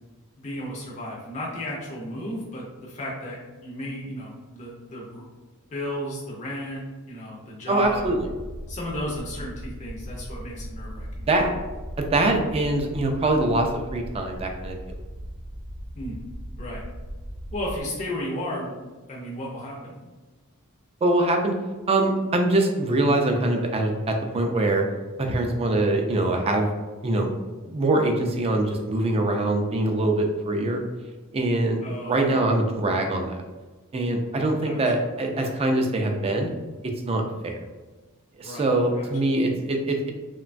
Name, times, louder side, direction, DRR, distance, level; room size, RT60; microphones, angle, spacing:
voice 1, 0.4-5.2 5.7-6.8 7.1-8.1 8.7-11.3 16.0-16.2 16.6-16.8 17.5-18.7 19.1-20.0 31.8-32.4 34.6-34.8 38.4-38.7 39.0-39.1, left 1 dB, 35° left, -4 dB, 0.5 m, -34 dB
voice 2, 7.7-8.3 11.3-11.5 12.0-14.8 21.0-21.5 21.9-24.8 25.2-26.7 27.0-27.3 27.7-30.8 31.3-31.8 32.1-33.4 33.9-36.5 36.8-37.5 38.4-40.1, right 2 dB, 25° right, 3 dB, 0.3 m, -23 dB
sound 1, 7.8-17.8, equal, 80° right, 0.7 m, -38 dB
2.9 x 2.2 x 2.5 m, 1.3 s
head